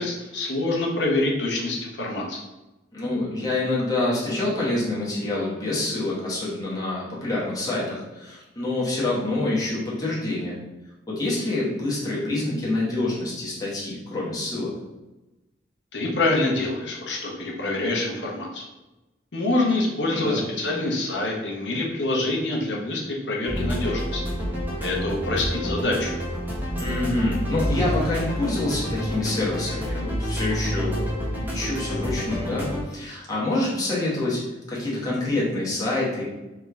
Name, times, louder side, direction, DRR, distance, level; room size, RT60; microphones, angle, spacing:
voice 1, 0.0-2.4 15.9-18.6 19.3-24.2 24.8-26.2, left 2 dB, 75° left, -1 dB, 0.9 m, -26 dB
voice 2, 2.9-10.6 11.1-14.7 20.1-20.4 26.8-31.1 31.5-34.4 34.7-36.2, left 2 dB, 20° left, -7 dB, 1.3 m, -26 dB
sound 1, 23.4-32.8, equal, 10° right, 0.9 m, -28 dB
3.6 x 3.2 x 3.6 m, 1.0 s
head